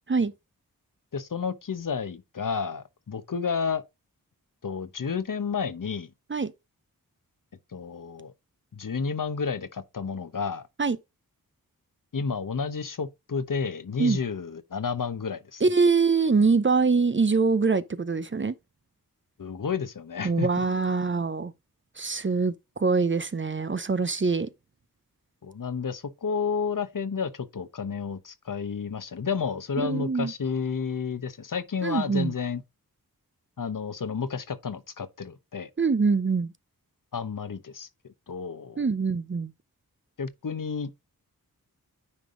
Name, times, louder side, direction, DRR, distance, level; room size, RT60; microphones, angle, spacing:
voice 1, 1.1-3.8 4.6-6.1 7.7-8.3 8.7-10.7 12.1-15.6 19.4-20.6 25.4-32.6 33.6-35.7 37.1-37.9 38.3-38.8 40.2-40.9, left 6 dB, 60° left, 1.0 m, -31 dB
voice 2, 15.6-18.5 20.2-21.5 22.0-24.5 29.8-30.3 31.8-32.3 35.8-36.5 38.8-39.5, right 4 dB, 35° right, 0.6 m, -24 dB
9.7 x 3.5 x 3.8 m
wide cardioid pair, 55°, 36 cm